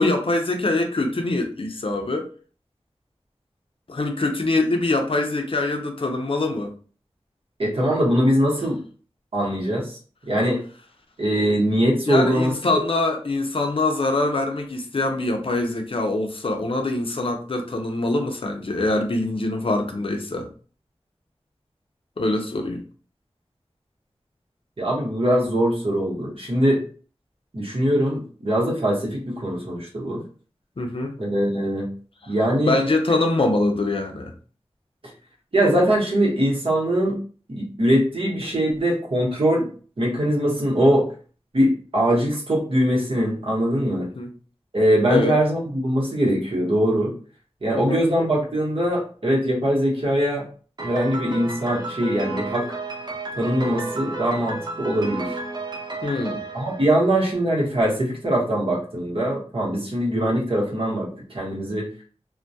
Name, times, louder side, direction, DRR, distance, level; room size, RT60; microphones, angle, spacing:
voice 1, 0.0-2.3 3.9-6.7 12.1-20.5 22.2-22.8 30.8-31.2 32.7-34.3 44.2-44.3 45.1-45.4 47.7-48.0 56.0-56.4, left 2 dB, 55° left, 0.5 m, -24 dB
voice 2, 7.6-8.8 9.3-10.0 10.3-10.6 11.2-12.8 24.8-26.8 27.5-30.2 31.2-31.9 32.3-32.8 35.5-37.2 37.5-39.7 40.0-41.1 41.5-44.1 44.7-47.1 47.6-50.5 50.8-52.8 53.4-55.4 56.5-61.9, equal, 60° right, 1.0 m, -22 dB
Piano, 50.8-57.6, right 2 dB, 40° right, 0.5 m, -32 dB
2.2 x 2.1 x 2.6 m
wide cardioid pair, 65°, 11 cm